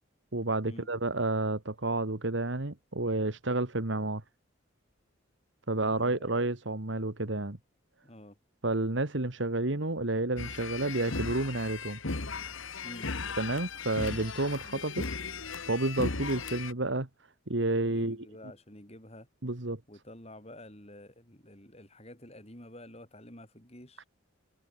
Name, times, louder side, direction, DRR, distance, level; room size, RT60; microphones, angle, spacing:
voice 1, 0.3-4.2 5.7-7.6 8.6-12.0 13.4-15.1 15.7-17.1 17.5-18.3 19.4-19.8 24.0-24.1, right 2 dB, 65° right, 1.8 m, -30 dB
voice 2, 5.8-6.3 8.0-8.4 12.8-13.1 17.9-19.3 19.9-24.1, left 1 dB, 30° left, 5.9 m, -49 dB
sound 1, 10.4-16.7, left 4 dB, 75° left, 1.7 m, -37 dB
head